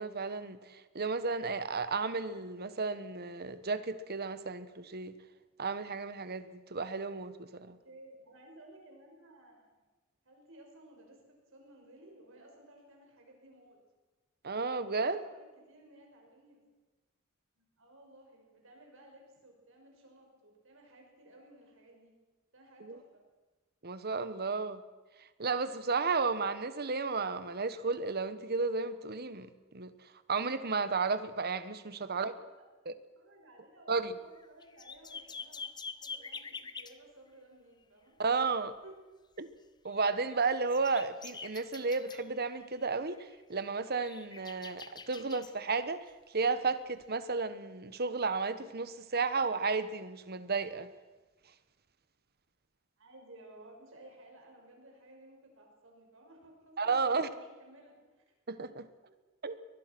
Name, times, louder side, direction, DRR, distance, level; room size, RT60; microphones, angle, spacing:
voice 1, 0.0-5.2 5.6-7.8 14.4-15.3 22.8-23.0 23.8-24.8 25.4-29.9 30.3-32.3 32.9-33.0 33.9-34.2 38.2-38.7 39.4-39.5 39.8-46.0 46.3-50.9 56.8-57.3 58.5-58.9 59.4-59.6, right 4 dB, 50° right, 13 dB, 1.3 m, -33 dB
voice 2, 7.6-9.7 10.2-13.8 15.1-16.6 17.5-22.2 22.5-23.2 32.0-32.6 33.1-38.1 38.8-39.0 53.0-58.2 58.5-58.7 59.1-59.2, right 1 dB, 65° right, 1 dB, 6.0 m, -57 dB
sound 1, 34.0-34.1 34.4-37.0 39.9-42.8 43.1-43.4 43.8-45.5 47.0-47.1, left 5 dB, 20° left, 0.8 m, -46 dB
23.0 x 20.5 x 6.1 m, 1.2 s
head